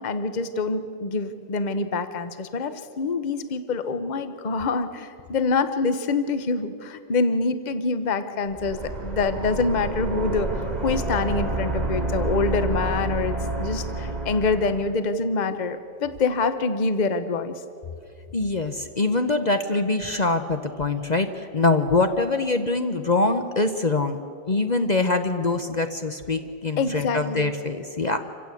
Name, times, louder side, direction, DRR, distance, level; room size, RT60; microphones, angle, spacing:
voice 1, 0.0-17.6 26.8-27.5, left 4 dB, 30° left, 11 dB, 0.8 m, -26 dB
sound 1, 8.5-15.0, right 2 dB, 20° right, 1.9 m, -29 dB
voice 2, 18.3-24.2 24.5-28.2, left 3 dB, 50° left, 8 dB, 0.5 m, -24 dB
27.0 x 15.5 x 8.4 m, 2.5 s
omnidirectional pair, 2.0 m